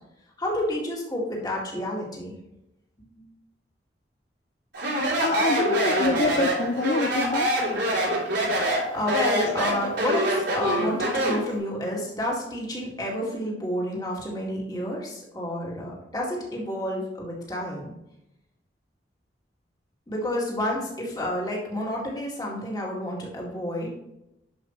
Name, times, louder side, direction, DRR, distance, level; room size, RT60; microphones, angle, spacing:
voice 1, 0.4-2.3 3.1-3.3 8.7-17.9 20.1-23.9, left 1 dB, 20° left, -3 dB, 2.0 m, -30 dB
Speech, 4.7-11.5, right 1 dB, 80° right, 3.2 m, -25 dB
voice 2, 5.0-7.5, left 3 dB, 45° left, 6 dB, 0.4 m, -26 dB
11.0 x 5.1 x 3.1 m, 0.86 s
head